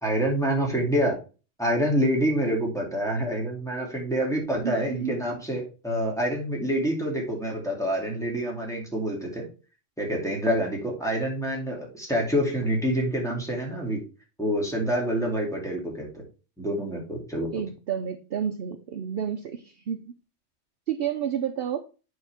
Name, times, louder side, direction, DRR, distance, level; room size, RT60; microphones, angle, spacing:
voice 1, 0.0-1.2 1.6-9.5 10.0-14.0 14.4-16.2 16.6-17.5, equal, ahead, 2.4 m, -27 dB
voice 2, 4.6-5.3 17.5-20.1 20.9-21.8, right 8 dB, 60° right, 0.8 m, -30 dB
8.9 x 4.8 x 3.5 m
omnidirectional pair, 1.3 m